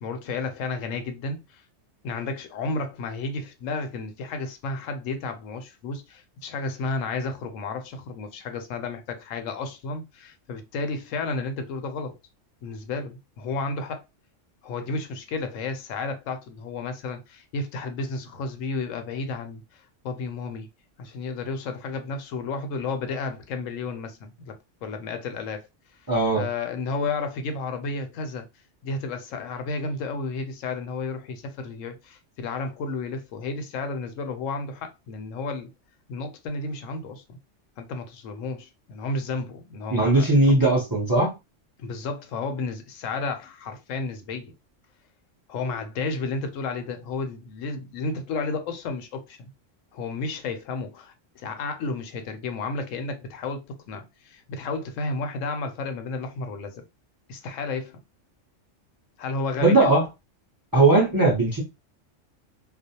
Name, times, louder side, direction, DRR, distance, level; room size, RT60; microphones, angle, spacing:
voice 1, 0.0-1.6 2.0-12.1 12.6-14.0 14.6-19.6 20.0-20.7 21.0-25.6 26.3-28.4 28.8-35.7 36.1-37.4 37.8-40.5 41.8-44.5 45.5-49.5 49.9-56.8 57.3-58.0 59.2-60.0, left 3 dB, 80° left, 0.9 m, -32 dB
voice 2, 26.1-26.4 39.9-41.3 59.6-60.0 60.7-61.6, right 2 dB, 25° right, 0.4 m, -19 dB
2.4 x 2.0 x 2.7 m
omnidirectional pair, 1.3 m